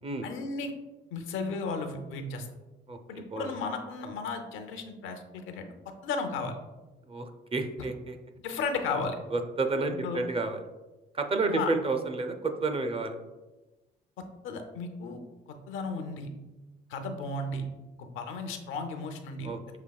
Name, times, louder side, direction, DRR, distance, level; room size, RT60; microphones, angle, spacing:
voice 1, 0.2-0.7 1.1-2.5 3.1-5.7 6.0-6.6 8.4-9.2 9.9-10.2 11.5-11.7 14.2-15.2 15.7-16.3 16.9-17.6 18.0-19.5, left 4 dB, 85° left, 5 dB, 0.6 m, -34 dB
voice 2, 7.1-8.2 9.3-10.6 11.1-13.2 19.4-19.8, right 3 dB, 30° right, 6 dB, 0.5 m, -30 dB
6.7 x 2.8 x 2.3 m, 1.1 s
cardioid pair, 90°, 20 cm